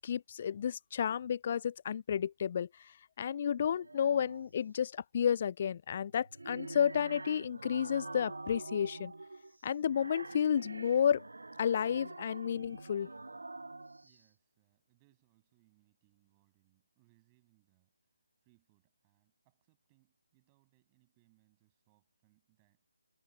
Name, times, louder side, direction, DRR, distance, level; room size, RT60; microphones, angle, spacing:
voice 1, 0.0-2.7 3.2-9.1 9.6-11.2 11.6-13.1, left 8 dB, 30° left, 0.3 m, -31 dB
sound 1, 3.6-4.5 6.1-14.2, right 2 dB, 65° right, 0.4 m, -46 dB
voice 2, 14.0-18.2 18.4-22.9, right 26 dB, 15° right, 7.6 m, -73 dB
figure-of-eight pair, 155°, 0 cm